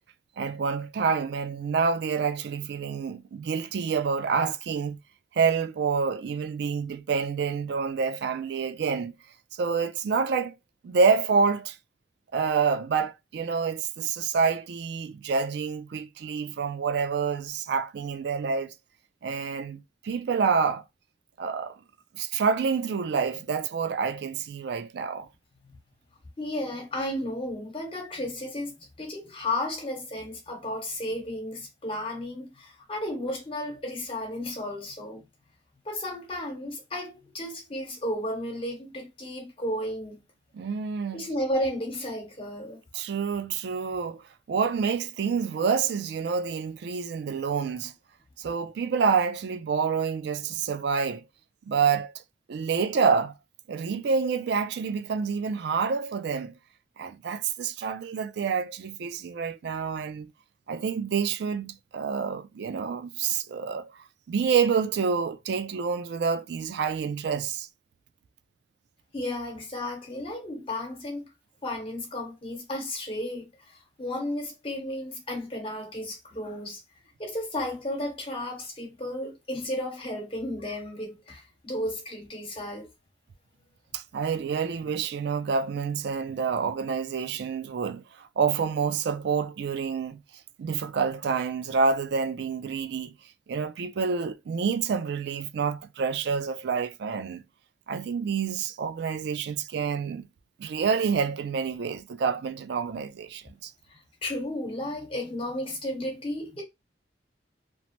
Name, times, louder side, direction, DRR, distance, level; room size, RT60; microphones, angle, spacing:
voice 1, 0.4-5.0 5.3-9.1 9.5-10.5 10.8-11.8 12.3-18.7 19.2-20.8 21.4-21.8 22.1-25.3 40.5-41.3 42.9-44.2 44.5-47.9 48.4-51.2 51.7-52.2 52.5-53.3 53.7-56.6 57.0-60.3 60.7-63.9 64.3-67.7 83.9-90.2 90.6-93.1 93.5-97.4 97.9-100.3 100.6-103.7, right 5 dB, 65° right, 0.3 m, -28 dB
voice 2, 26.4-35.2 35.8-40.2 41.1-42.8 69.1-71.3 71.6-76.8 77.2-82.9 104.2-106.6, left 1 dB, 30° left, 1.2 m, -33 dB
2.9 x 2.0 x 3.0 m
head